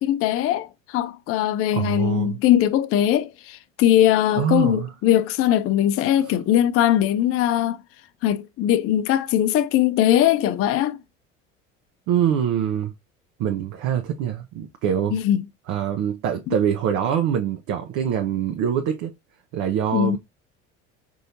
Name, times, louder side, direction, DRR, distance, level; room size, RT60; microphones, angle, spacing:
voice 1, 0.0-7.8 8.2-11.0 15.1-15.4 19.9-20.2, left 11 dB, 40° left, 0.4 m, -20 dB
voice 2, 1.7-2.4 4.4-4.9 6.3-6.4 12.1-12.9 13.4-15.2 15.7-19.1 19.5-20.2, right 9 dB, 55° right, 0.7 m, -24 dB
4.2 x 2.7 x 2.5 m
hypercardioid pair, 70°, 35 cm